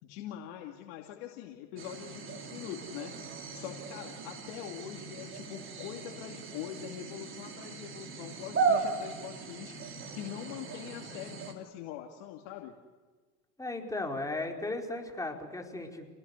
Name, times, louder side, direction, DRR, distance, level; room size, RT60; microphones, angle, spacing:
voice 1, 0.0-3.1 3.5-9.8 10.1-12.7, left 10 dB, 70° left, 2 dB, 2.6 m, -43 dB
sound 1, 1.8-11.5, right 5 dB, 35° right, 4.2 m, -37 dB
voice 2, 13.6-16.1, left 2 dB, 10° left, 2 dB, 4.6 m, -36 dB
28.5 x 19.5 x 8.3 m, 1.4 s
supercardioid pair, 105°, 37 cm